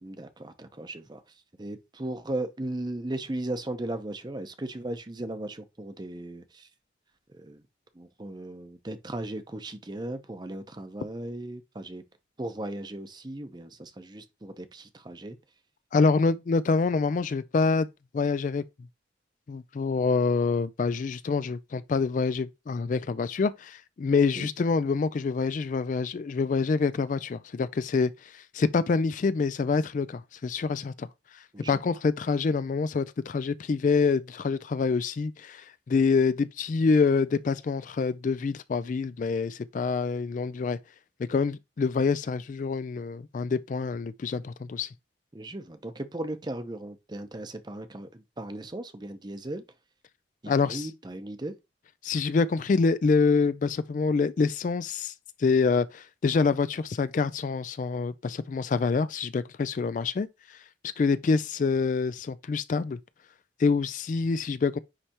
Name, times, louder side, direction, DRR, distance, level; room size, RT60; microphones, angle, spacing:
voice 1, 0.0-1.2 1.6-6.7 7.3-7.6 7.9-12.0 12.4-15.4 24.4-24.5 31.5-31.8 45.3-49.6 50.4-51.5, right 1 dB, 25° right, 0.7 m, -37 dB
voice 2, 15.9-17.9 18.1-18.6 19.5-31.1 31.7-40.8 41.2-44.9 50.5-50.9 52.0-55.1 55.4-60.6 61.0-63.0 63.6-64.8, left 4 dB, 45° left, 0.3 m, -26 dB
9.8 x 3.3 x 2.9 m
head